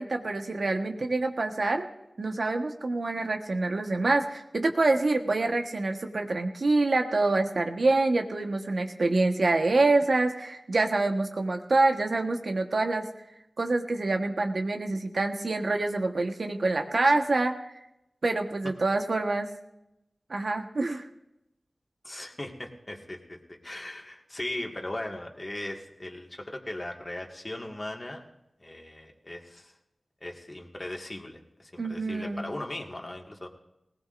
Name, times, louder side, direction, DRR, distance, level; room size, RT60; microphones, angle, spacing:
voice 1, 0.0-1.8 2.2-13.0 13.6-17.7 18.2-19.5 20.3-21.0 31.8-32.5, right 2 dB, 75° right, 4 dB, 1.3 m, -26 dB
voice 2, 22.0-28.2 28.6-29.7 30.2-33.5, left 1 dB, 35° left, 2 dB, 1.9 m, -38 dB
19.5 x 18.0 x 2.6 m, 0.88 s
wide cardioid pair, 55°, 0 cm